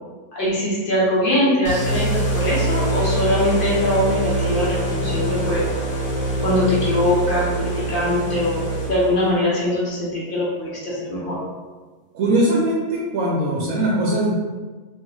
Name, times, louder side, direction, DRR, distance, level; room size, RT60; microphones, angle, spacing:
voice 1, 0.3-5.7 6.4-11.4, left 1 dB, 40° left, -7 dB, 1.0 m, -22 dB
sound 1, 1.6-9.3, right 1 dB, 70° left, 1.4 m, -24 dB
voice 2, 12.1-14.3, right 1 dB, 70° right, -4 dB, 0.9 m, -20 dB
3.2 x 2.7 x 2.9 m, 1.4 s
omnidirectional pair, 1.7 m